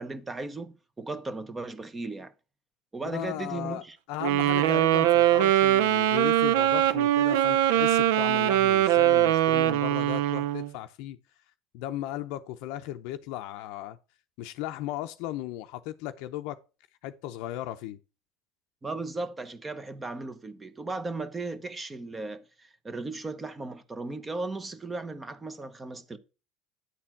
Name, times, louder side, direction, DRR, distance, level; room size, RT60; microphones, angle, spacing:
voice 1, 0.0-2.3 2.9-4.0 18.8-26.2, right 3 dB, 20° right, 0.9 m, -36 dB
voice 2, 3.0-11.2 11.7-14.0 14.4-16.6 17.0-18.0, left 14 dB, 70° left, 0.6 m, -36 dB
Wind instrument woodwind instrument, 4.2-10.7, right 12 dB, 80° right, 0.5 m, -22 dB
9.7 x 4.3 x 5.8 m
supercardioid pair, 100°, 0 cm